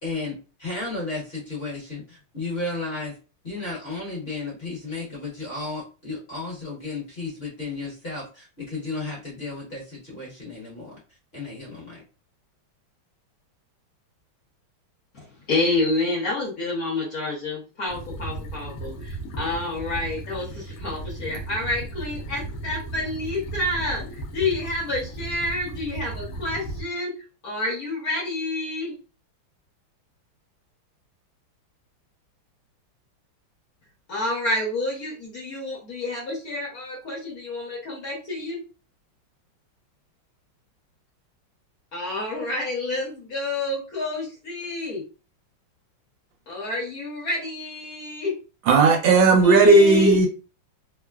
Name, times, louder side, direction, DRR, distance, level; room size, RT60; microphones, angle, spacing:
voice 1, 0.0-3.1 3.4-11.0 11.3-12.0, left 3 dB, 35° left, -5 dB, 1.2 m, -33 dB
voice 2, 15.1-24.0 24.3-27.1 27.4-28.9 34.1-38.6 41.9-45.0 46.5-48.3 49.4-50.2, left 2 dB, 55° left, -4 dB, 1.2 m, -28 dB
sound 1, 17.9-26.8, right 2 dB, 75° left, 0.8 m, -35 dB
voice 3, 48.7-50.3, right 3 dB, 75° right, 3 dB, 1.3 m, -15 dB
3.3 x 2.0 x 2.3 m, 0.34 s
omnidirectional pair, 2.2 m